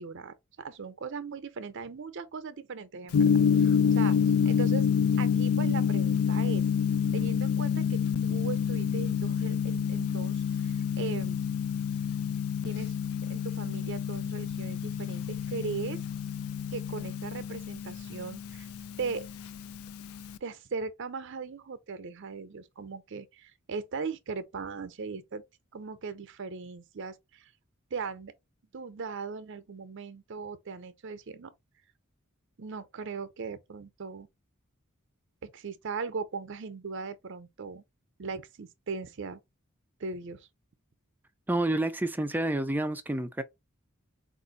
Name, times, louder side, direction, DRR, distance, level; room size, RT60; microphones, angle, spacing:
voice 1, 0.0-3.3 3.6-4.2 4.4-4.9 5.2-6.6 7.1-11.4 12.6-12.9 13.3-16.0 16.7-18.7 19.0-19.3 20.4-25.4 25.7-27.5 27.9-28.3 28.7-31.5 32.6-34.3 35.4-37.8 38.2-39.4 40.0-40.4, right 5 dB, 55° right, 0.6 m, -38 dB
Gong, 3.1-20.4, left 7 dB, 85° left, 0.4 m, -28 dB
voice 2, 41.5-43.4, right 1 dB, 10° right, 0.4 m, -29 dB
4.3 x 2.5 x 3.9 m
head